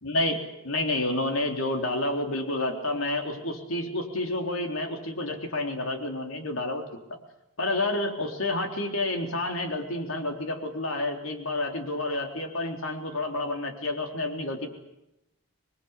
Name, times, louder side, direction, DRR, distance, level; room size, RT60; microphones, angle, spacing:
voice 1, 0.0-0.4 0.6-7.2 7.6-14.7, left 2 dB, 85° left, 4 dB, 3.9 m, -29 dB
27.0 x 21.5 x 8.4 m, 0.88 s
head